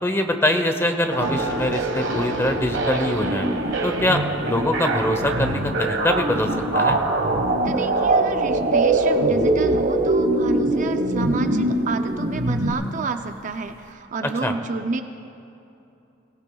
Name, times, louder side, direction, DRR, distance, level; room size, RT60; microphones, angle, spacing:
voice 1, 0.0-3.5 3.8-7.0 14.2-14.5, left 1 dB, 15° left, 6 dB, 0.9 m, -23 dB
sound 1, 1.1-13.4 13.7-13.8, right 1 dB, 60° left, 3.0 m, -41 dB
sound 2, 1.1-12.7, right 2 dB, 65° right, 1.4 m, -22 dB
sound 3, 1.2-10.6, left 1 dB, 80° left, 3.6 m, -44 dB
voice 2, 7.6-15.0, right 3 dB, 40° right, 7 dB, 0.5 m, -30 dB
23.5 x 17.0 x 2.3 m, 2.8 s
head